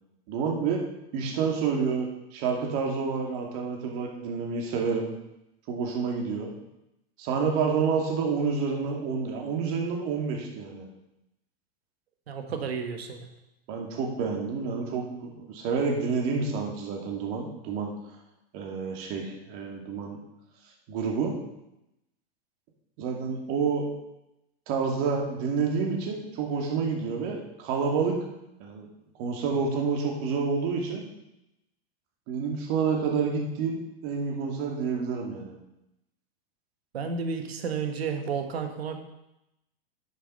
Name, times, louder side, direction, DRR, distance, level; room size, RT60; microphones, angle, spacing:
voice 1, 0.3-0.8 1.1-5.1 5.7-6.5 7.2-10.9 13.7-17.9 18.5-20.2 20.9-21.3 23.0-23.9 24.7-28.2 28.6-28.9 29.2-31.0 32.3-35.5, right 5 dB, 45° right, 0 dB, 2.5 m, -29 dB
voice 2, 12.3-13.3 36.9-39.0, right 5 dB, 90° right, 5 dB, 1.6 m, -32 dB
9.6 x 6.7 x 5.5 m, 0.87 s
hypercardioid pair, 125°, 30 cm